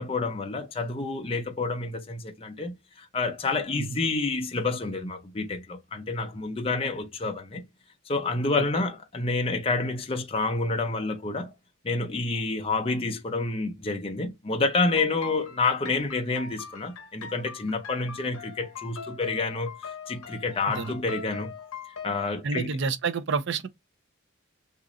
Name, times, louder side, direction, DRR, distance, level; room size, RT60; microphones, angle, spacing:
voice 1, 0.0-7.6 8.1-11.5 11.8-21.5 22.0-22.7, left 3 dB, 25° left, 0.5 m, -29 dB
sound 1, 14.9-22.3, left 5 dB, 90° left, 0.8 m, -41 dB
voice 2, 22.4-23.7, right 5 dB, 60° right, 0.5 m, -29 dB
2.9 x 2.4 x 3.8 m
head